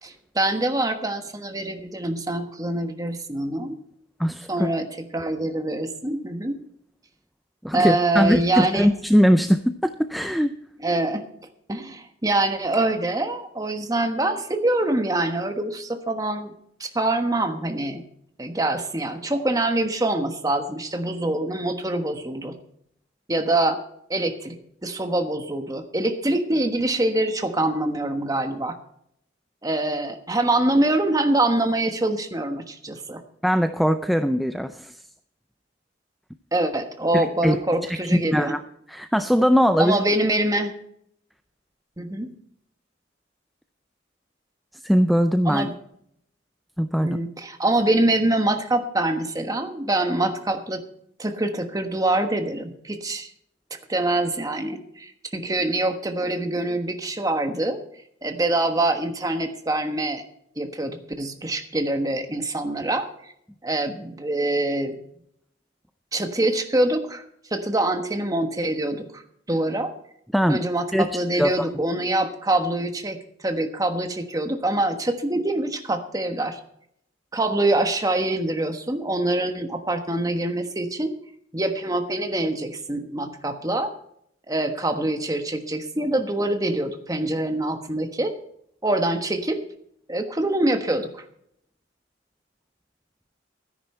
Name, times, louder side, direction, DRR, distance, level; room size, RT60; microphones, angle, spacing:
voice 1, 0.0-3.8 4.5-6.6 7.7-8.9 10.8-11.2 11.7-16.5 16.8-18.0 18.4-22.5 23.3-23.8 24.1-24.6 24.8-28.8 29.6-33.2 36.5-38.5 39.8-40.7 42.0-42.3 45.4-45.7 47.0-50.8 51.2-53.3 53.7-57.8 58.2-60.2 60.6-63.3 63.6-65.0 66.1-67.2 67.5-69.2 69.5-69.9 70.5-76.6 77.3-81.1 81.5-83.9 84.5-88.3 88.8-89.6 90.1-91.2, right 2 dB, 20° right, 6 dB, 1.2 m, -25 dB
voice 2, 4.2-4.7 7.6-10.5 33.4-35.0 37.1-38.6 38.9-40.0 44.7-45.7 46.8-47.2 70.3-70.6 70.9-71.1 71.4-71.7, equal, ahead, 8 dB, 0.4 m, -21 dB
13.0 x 10.5 x 4.4 m, 0.70 s
head